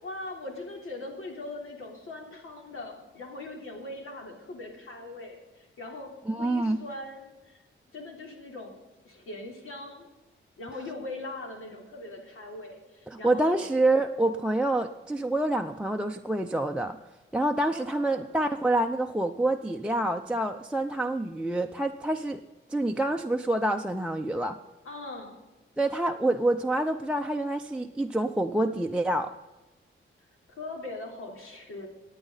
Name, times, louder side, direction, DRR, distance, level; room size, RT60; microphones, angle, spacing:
voice 1, 0.0-7.6 7.9-8.8 9.0-10.1 10.6-13.7 17.6-18.3 24.8-25.4 30.5-31.9, left 2 dB, 90° left, 0 dB, 3.5 m, -41 dB
voice 2, 6.3-6.8 13.1-17.0 17.3-22.4 22.7-24.6 25.8-29.3, right 1 dB, 5° right, 3 dB, 0.5 m, -27 dB
24.5 x 9.1 x 4.0 m, 1.1 s
wide cardioid pair, 140°, 21 cm